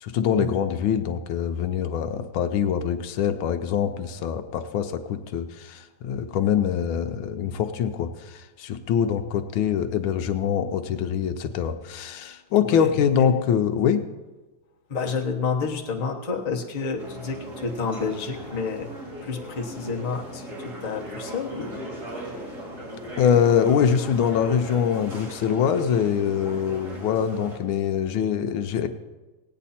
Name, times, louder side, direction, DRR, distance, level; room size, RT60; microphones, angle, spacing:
voice 1, 0.0-14.0 23.2-28.9, left 8 dB, 75° left, 8 dB, 1.4 m, -24 dB
voice 2, 12.6-13.3 14.9-18.9 19.2-21.8, left 5 dB, 30° left, 0 dB, 0.8 m, -30 dB
sound 1, 17.0-27.6, equal, 35° right, 2.5 m, -38 dB
17.5 x 9.0 x 4.2 m, 1.2 s
omnidirectional pair, 2.3 m